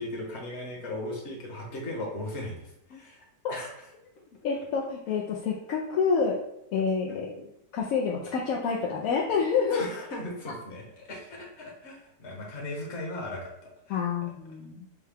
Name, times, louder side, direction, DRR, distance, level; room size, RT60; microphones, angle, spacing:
voice 1, 0.0-2.6 2.9-3.7 9.1-9.4 9.7-14.0, left 1 dB, 45° left, -1 dB, 1.2 m, -38 dB
voice 2, 4.4-6.4 6.7-7.5 7.7-9.8 13.9-14.8, left 5 dB, 70° left, -2 dB, 0.8 m, -28 dB
6.4 x 2.2 x 3.4 m, 0.79 s
omnidirectional pair, 1.9 m